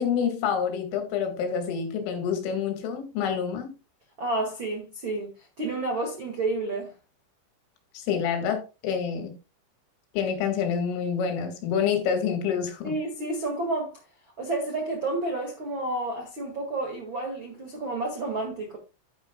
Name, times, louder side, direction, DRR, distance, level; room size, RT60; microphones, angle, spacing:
voice 1, 0.0-3.7 7.9-9.4 10.1-13.0, left 7 dB, 75° left, 4.3 m, -27 dB
voice 2, 4.2-6.9 12.8-14.0 14.4-18.8, right 2 dB, 60° right, 1.2 m, -30 dB
11.0 x 10.5 x 2.3 m
omnidirectional pair, 5.9 m